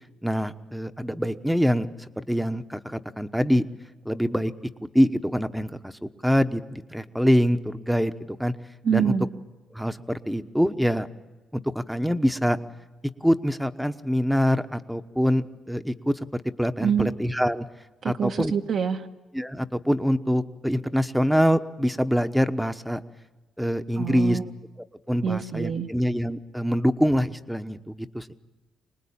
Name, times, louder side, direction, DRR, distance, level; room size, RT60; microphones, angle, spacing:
voice 1, 0.2-1.9 2.2-3.6 4.0-4.5 4.9-8.5 8.9-9.1 9.7-11.1 11.5-12.6 13.2-17.7 18.0-18.5 19.3-23.0 23.6-24.4 25.1-28.3, equal, ahead, 10 dB, 1.1 m, -24 dB
voice 2, 8.8-9.3 16.8-17.1 18.0-19.0 24.0-24.4 25.2-25.9, right 7 dB, 60° right, 3 dB, 1.5 m, -25 dB
26.0 x 19.5 x 8.7 m, 1.2 s
cardioid pair, 90°, 0 cm